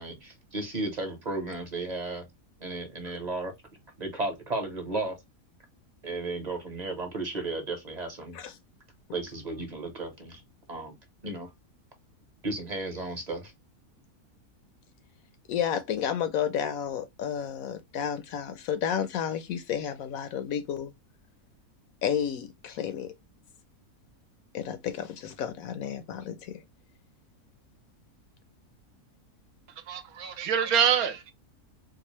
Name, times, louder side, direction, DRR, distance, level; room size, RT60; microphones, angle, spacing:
voice 1, 0.0-2.3 2.6-3.5 4.0-5.2 6.0-8.4 9.1-10.4 10.7-11.0 11.2-11.5 12.4-13.5, right 2 dB, 30° right, 0.9 m, -34 dB
voice 2, 15.5-20.9 22.0-23.1 24.5-26.6, left 8 dB, 70° left, 0.9 m, -31 dB
voice 3, 29.8-31.3, right 8 dB, 75° right, 1.1 m, -26 dB
3.9 x 2.4 x 3.0 m
omnidirectional pair, 1.6 m